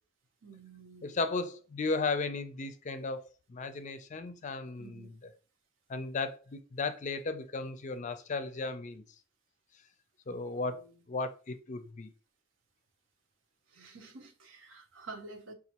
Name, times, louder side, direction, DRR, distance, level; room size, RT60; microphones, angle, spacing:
voice 1, 0.4-1.2 4.8-5.1 10.3-11.0 13.7-15.5, right 3 dB, 75° right, 0.7 m, -50 dB
voice 2, 1.0-3.2 3.5-5.3 5.9-9.0 10.3-12.1, left 3 dB, 40° left, 0.4 m, -35 dB
5.2 x 2.3 x 2.8 m
head